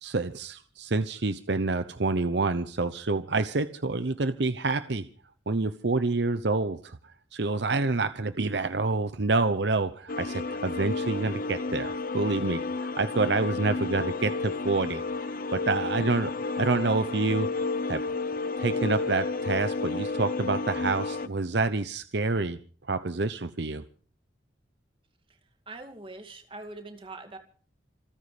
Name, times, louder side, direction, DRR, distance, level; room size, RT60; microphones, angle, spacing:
voice 1, 0.0-5.1 5.5-7.0 7.3-18.0 18.6-22.6 22.9-23.8, right 3 dB, 65° right, 12 dB, 0.8 m, -28 dB
sound 1, 10.1-21.3, left 3 dB, 45° left, 0.8 m, -31 dB
voice 2, 25.3-27.4, right 2 dB, 30° right, 6 dB, 2.4 m, -43 dB
27.5 x 9.6 x 5.1 m, 0.42 s
head